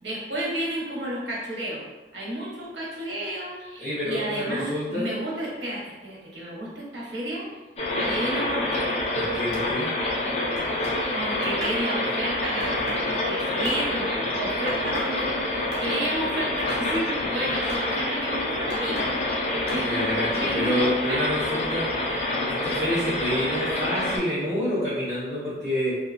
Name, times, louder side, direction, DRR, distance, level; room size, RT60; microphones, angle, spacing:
voice 1, 0.0-1.8 2.1-7.5 8.0-8.9 11.1-19.0 19.5-20.8 21.1-21.3, right 1 dB, 80° right, -6 dB, 0.9 m, -32 dB
voice 2, 3.8-5.1 9.2-9.9 19.7-21.9 22.5-25.9, equal, 15° left, -15 dB, 0.9 m, -28 dB
sound 1, 7.8-24.2, left 1 dB, 35° left, 0.4 m, -27 dB
sound 2, 9.5-9.7 10.5-11.0 11.6-11.8 12.6-13.0 13.6-13.8 14.7-15.1 15.7-15.9 16.7-17.1 17.7-17.9 18.7-19.1 19.7-19.8, left 1 dB, 65° left, 0.8 m, -36 dB
2.6 x 2.3 x 2.4 m, 1.2 s
head